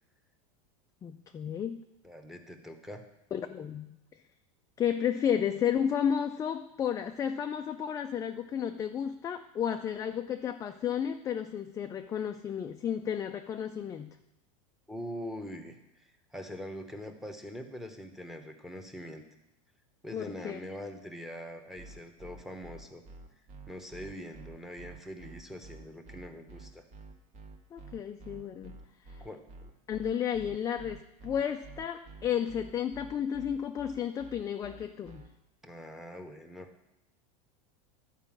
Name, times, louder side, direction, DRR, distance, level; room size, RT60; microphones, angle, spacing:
voice 1, 1.0-1.8 3.3-4.0 4.8-14.2 20.1-20.6 27.7-28.8 29.1-29.2 29.9-35.3, left 8 dB, 20° left, 6 dB, 0.3 m, -32 dB
voice 2, 2.0-3.0 14.9-16.0 16.3-19.2 20.0-23.0 23.7-26.8 29.2-29.7 35.6-36.9, equal, ahead, 6 dB, 1.0 m, -43 dB
sound 1, 21.8-35.3, right 3 dB, 40° right, 1.4 m, -49 dB
11.0 x 4.9 x 7.3 m, 0.88 s
supercardioid pair, 135°, 19 cm